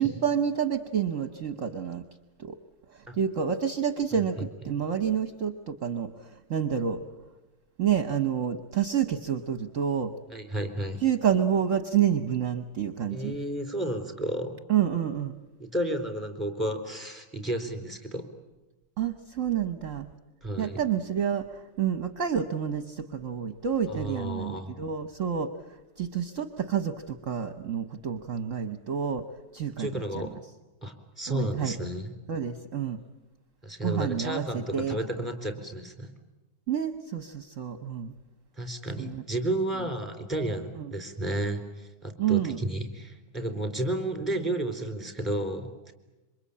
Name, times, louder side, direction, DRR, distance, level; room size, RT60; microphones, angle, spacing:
voice 1, 0.0-2.0 2.4-2.6 2.9-7.0 7.8-10.1 11.0-13.4 14.7-15.4 19.0-20.1 20.6-29.3 29.5-30.3 31.3-31.8 32.3-33.0 33.8-35.0 36.7-38.1 39.0-39.2 40.8-40.9 42.2-42.6, right 8 dB, 50° right, 9 dB, 1.3 m, -29 dB
voice 2, 10.3-11.0 13.1-14.6 15.6-18.2 20.4-20.8 23.9-24.7 29.8-30.3 30.8-32.1 33.6-36.1 38.6-45.9, right 1 dB, ahead, 6 dB, 3.8 m, -32 dB
27.0 x 24.5 x 8.6 m, 1.1 s
omnidirectional pair, 1.9 m